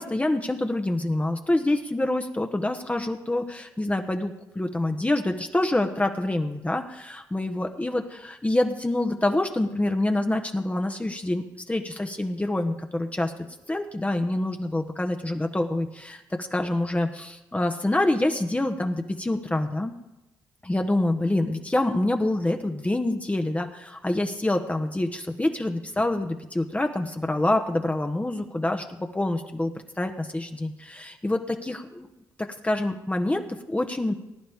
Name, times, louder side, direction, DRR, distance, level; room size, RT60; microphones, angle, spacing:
voice 1, 0.0-8.0 8.4-13.3 13.7-19.9 20.6-32.1 32.4-34.1, left 1 dB, 15° left, 5 dB, 1.2 m, -26 dB
19.0 x 10.0 x 3.6 m, 0.96 s
supercardioid pair, 50°, 8 cm